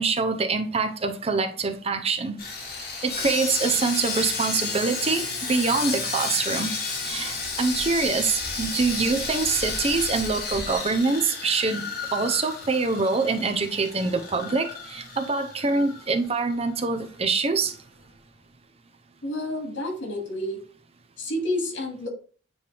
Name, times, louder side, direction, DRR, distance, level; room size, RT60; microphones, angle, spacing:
voice 1, 0.0-2.4 3.0-6.7 7.0-17.7, right 4 dB, 35° right, 0.7 m, -25 dB
Sawing, 2.4-16.6 16.9-17.1 17.5-17.7, left 4 dB, 55° left, 2.0 m, -32 dB
voice 2, 19.2-20.6 21.2-22.1, left 1 dB, 80° left, 2.3 m, -29 dB
9.4 x 3.2 x 3.4 m
head